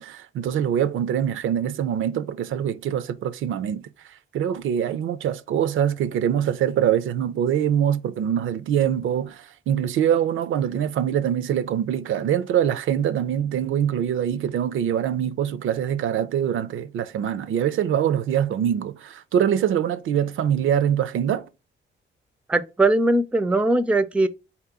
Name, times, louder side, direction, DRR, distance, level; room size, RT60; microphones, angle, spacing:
voice 1, 0.0-3.9 4.3-21.5, right 9 dB, 75° right, 0.4 m, -24 dB
voice 2, 22.5-24.3, right 2 dB, 5° right, 0.3 m, -20 dB
4.0 x 2.9 x 3.5 m
cardioid pair, 130°, 21 cm